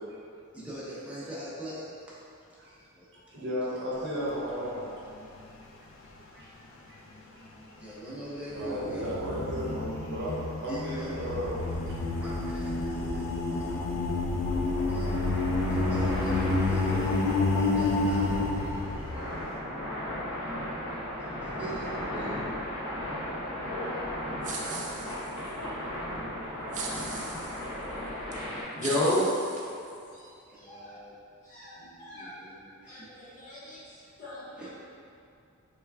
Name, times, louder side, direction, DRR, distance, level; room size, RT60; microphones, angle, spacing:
voice 1, 0.5-1.9 2.8-3.1 7.8-9.1 10.7-11.4 11.7-11.8 12.2-13.6 14.1-14.2 14.6-15.2 15.7-19.3 21.4-22.4 30.5-31.1 31.8-33.4 34.6-34.7, right 1 dB, 5° right, -9 dB, 0.6 m, -42 dB
voice 2, 3.1-4.8 6.3-6.5 6.9-7.0 7.4-7.5 8.5-12.0, equal, 55° right, -7 dB, 0.7 m, -34 dB
sound 1, 4.0-4.6 5.0-5.1 8.6-19.5, left 2 dB, 65° left, 0.4 m, -29 dB
sound 2, 10.3-28.6, left 1 dB, 85° left, 1.2 m, -37 dB
sound 3, 24.4-25.5 26.7-27.7 28.3-28.4 28.8-30.2, right 4 dB, 35° right, 0.3 m, -39 dB
voice 3, 28.8-29.2 30.1-30.2 30.6-31.0 31.5-32.4 32.9-33.8 34.2-34.7, left 1 dB, 35° left, -8 dB, 0.7 m, -32 dB
3.3 x 2.2 x 3.4 m, 2.5 s
head